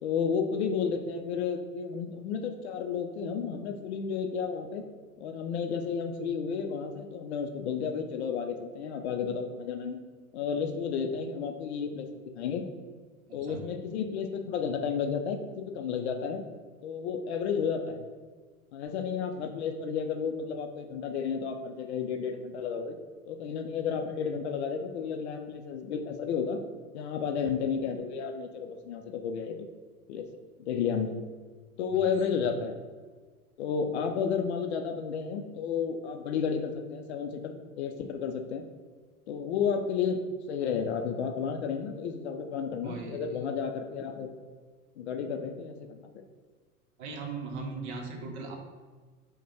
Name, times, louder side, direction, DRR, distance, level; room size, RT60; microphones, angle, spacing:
voice 1, 0.0-4.8 5.2-10.0 10.3-12.7 13.3-16.4 16.8-18.0 18.7-23.0 23.3-26.6 26.9-29.6 30.1-30.3 30.7-31.2 31.8-32.8 33.6-38.7 39.3-40.2 40.5-44.3 45.0-46.1, left 6 dB, 50° left, 5 dB, 0.4 m, -32 dB
voice 2, 13.3-13.6 42.8-43.2 47.0-48.6, right 4 dB, 50° right, 3 dB, 0.8 m, -38 dB
4.9 x 2.2 x 3.2 m, 1.5 s
figure-of-eight pair, 90°, 44 cm